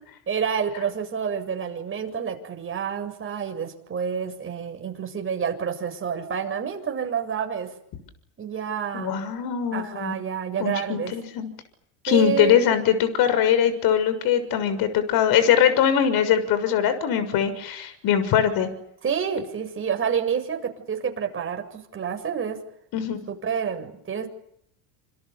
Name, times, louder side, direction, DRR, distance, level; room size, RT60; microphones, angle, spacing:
voice 1, 0.3-7.7 8.4-9.2 9.7-11.1 12.1-12.7 19.0-22.6 23.3-24.3, right 7 dB, 30° right, 4 dB, 7.7 m, -28 dB
voice 2, 8.9-10.2 10.6-11.5 12.0-18.7 22.9-23.2, left 9 dB, 55° left, 12 dB, 6.7 m, -22 dB
28.0 x 28.0 x 7.0 m, 0.72 s
supercardioid pair, 115°, 43 cm